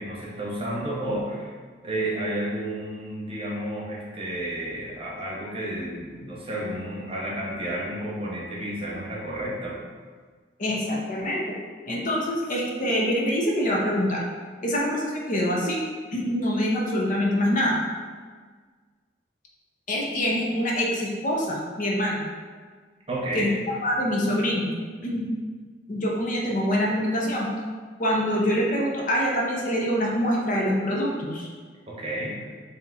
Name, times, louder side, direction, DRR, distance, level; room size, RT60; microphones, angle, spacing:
voice 1, 0.0-1.5 1.8-9.8 23.1-23.6 31.9-32.3, right 1 dB, 30° right, -5 dB, 0.9 m, -31 dB
voice 2, 10.6-11.4 11.9-14.2 14.6-15.8 16.1-17.8 19.9-22.2 23.3-23.5 23.8-24.7 25.0-25.3 25.9-27.5 28.0-31.5, equal, 45° left, -2 dB, 0.7 m, -25 dB
3.4 x 2.8 x 4.0 m, 1.5 s
head